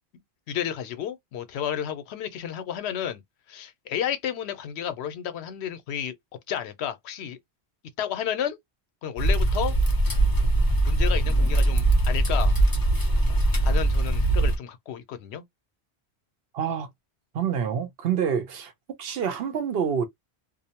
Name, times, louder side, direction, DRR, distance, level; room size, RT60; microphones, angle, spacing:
voice 1, 0.5-3.2 3.5-6.1 6.5-7.4 8.0-8.6 9.0-9.7 10.8-12.5 13.6-15.4, left 9 dB, 80° left, 0.8 m, -31 dB
sound 1, 9.2-14.6, right 2 dB, 25° left, 0.6 m, -21 dB
voice 2, 16.5-16.9 17.3-18.7 19.0-20.0, right 7 dB, 65° right, 0.8 m, -27 dB
2.6 x 2.0 x 2.8 m
omnidirectional pair, 1.1 m